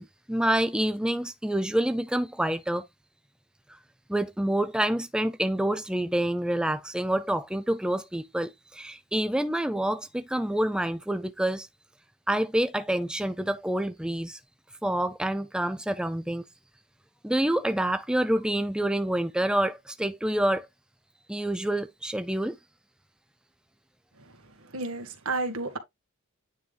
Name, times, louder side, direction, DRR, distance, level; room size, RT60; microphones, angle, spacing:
voice 1, 0.0-2.8 4.1-11.7 12.3-14.4 14.8-16.4 17.2-20.7 21.3-22.6, right 1 dB, 5° right, 0.4 m, -27 dB
voice 2, 24.2-25.8, right 3 dB, 75° right, 1.7 m, -33 dB
9.6 x 3.6 x 3.3 m
head